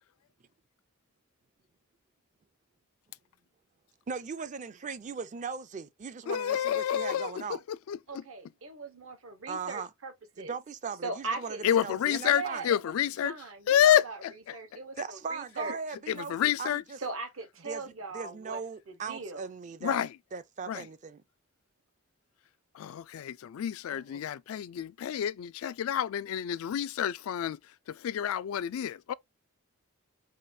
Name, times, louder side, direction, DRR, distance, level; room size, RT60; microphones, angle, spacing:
voice 1, 4.1-7.6 9.5-9.9 10.4-12.6 15.0-17.0 17.6-20.0 20.3-21.2 23.9-24.2, right 5 dB, 35° right, 0.4 m, -39 dB
voice 2, 6.3-8.2 11.6-13.3 13.7-14.6 16.1-16.8 19.8-20.1 20.7-20.9 22.7-27.6 27.9-29.1, left 10 dB, 75° left, 0.3 m, -29 dB
voice 3, 8.1-10.1 10.4-10.5 11.0-11.6 12.3-12.8 13.2-14.2 14.5-15.8 17.0-18.6 19.1-19.4, right 3 dB, 70° right, 1.0 m, -39 dB
4.9 x 2.3 x 2.6 m
head